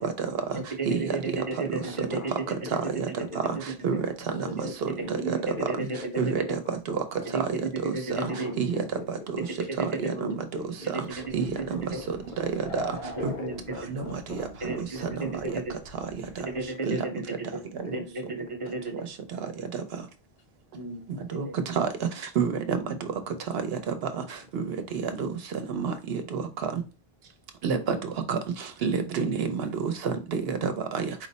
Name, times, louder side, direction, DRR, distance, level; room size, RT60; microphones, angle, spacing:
voice 1, 0.0-0.4 1.8-3.6 3.9-4.1 4.4-7.3 8.1-12.4 13.2-15.6 17.8-18.0 23.1-23.2, left 4 dB, 60° left, 5 dB, 0.7 m, -43 dB
voice 2, 0.5-2.4 3.2-3.3 3.7-4.0 4.6-4.7 5.0-6.5 7.3-8.6 9.7-10.4 10.8-12.0 13.2-13.8 14.6-15.7 16.4-17.6 17.9-18.8 20.7-21.8 30.4-30.6, right 3 dB, 35° right, 3 dB, 0.7 m, -34 dB
voice 3, 6.2-6.6 6.9-7.0 7.9-8.3 8.6-8.8 9.3-9.4 10.2-10.6 11.3-11.5 12.1-12.2 12.7-12.8 13.2-13.3 13.9-14.0 14.3-14.4 14.6-14.9 15.5-15.6 16.9-17.0 21.3-22.1 22.4-22.8 23.9-24.0 24.5-24.8 25.2-25.3 25.7-26.4 27.6-28.0 28.3-31.1, right 6 dB, 75° right, 8 dB, 0.9 m, -28 dB
sound 1, 11.1-16.7, equal, 80° left, 1.3 m, -43 dB
4.5 x 2.1 x 3.9 m, 0.31 s
omnidirectional pair, 1.0 m